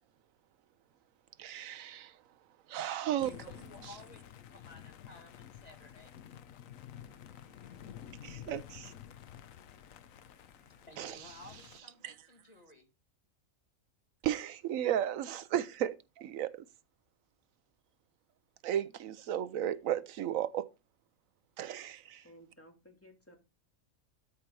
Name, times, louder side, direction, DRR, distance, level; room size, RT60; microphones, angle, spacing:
voice 1, 1.4-2.2 2.7-3.3 8.2-8.9 11.0-11.2 12.0-12.1 14.2-16.6 18.6-20.7 21.6-22.2, right 11 dB, 80° right, 1.0 m, -34 dB
voice 2, 3.1-6.1 10.9-12.9, left 1 dB, 30° left, 2.3 m, -55 dB
sound 1, 3.2-11.8, left 10 dB, 80° left, 1.1 m, -51 dB
voice 3, 22.2-23.4, equal, 10° left, 2.6 m, -57 dB
12.5 x 4.4 x 5.3 m
omnidirectional pair, 1.4 m